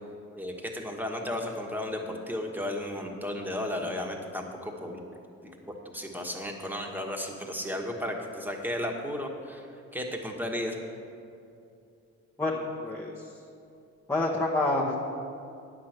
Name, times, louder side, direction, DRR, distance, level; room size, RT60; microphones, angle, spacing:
voice 1, 0.3-5.0 5.4-9.7 9.9-10.7, left 1 dB, 5° right, 2 dB, 1.4 m, -34 dB
voice 2, 12.4-13.1 14.1-15.0, left 2 dB, 10° left, -3 dB, 1.1 m, -27 dB
9.3 x 6.0 x 7.9 m, 2.5 s
cardioid pair, 90°, 30 cm